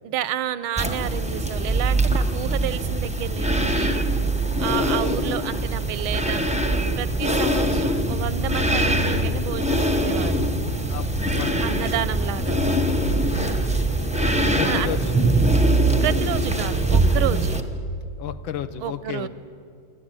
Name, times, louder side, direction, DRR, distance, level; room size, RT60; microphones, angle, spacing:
voice 1, 0.0-4.0 4.6-10.3 11.6-12.6 13.4-13.9 14.6-14.9 16.0-17.5 18.8-19.3, right 11 dB, 90° right, 15 dB, 1.6 m, -30 dB
sound 1, 0.8-17.6, right 1 dB, 5° right, 0.5 m, -22 dB
voice 2, 4.7-5.0 10.9-11.6 12.3-14.0 14.5-15.1 17.5-17.7 18.2-19.3, left 10 dB, 75° left, 9 dB, 1.7 m, -34 dB
27.0 x 12.0 x 8.9 m, 2.3 s
omnidirectional pair, 2.3 m